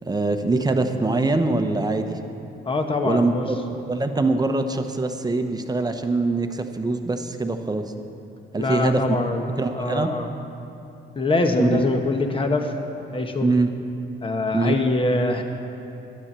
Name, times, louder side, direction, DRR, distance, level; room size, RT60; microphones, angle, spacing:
voice 1, 0.0-2.2 3.0-3.3 3.9-7.9 8.5-9.2 9.6-10.1 11.6-11.8 13.4-13.7 14.5-14.7, right 3 dB, 20° right, 7 dB, 0.9 m, -23 dB
voice 2, 2.6-3.4 8.6-10.3 11.1-12.7 13.1-13.5 14.2-15.4, left 2 dB, 25° left, 4 dB, 1.2 m, -23 dB
11.0 x 9.8 x 7.4 m, 2.9 s
cardioid pair, 90°, 20 cm